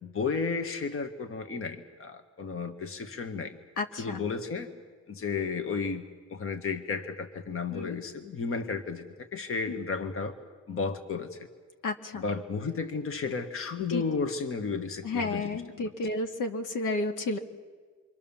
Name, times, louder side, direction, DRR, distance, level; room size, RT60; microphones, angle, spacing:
voice 1, 0.0-3.6 4.0-4.7 5.1-10.4 10.7-11.5 12.1-15.6, left 4 dB, 45° left, 7 dB, 1.8 m, -33 dB
voice 2, 3.8-4.2 7.7-8.0 9.7-9.8 11.8-12.2 13.9-14.0 15.0-17.4, left 3 dB, 85° left, 4 dB, 2.3 m, -32 dB
28.5 x 24.0 x 7.3 m, 1.5 s
cardioid pair, 125°, 31 cm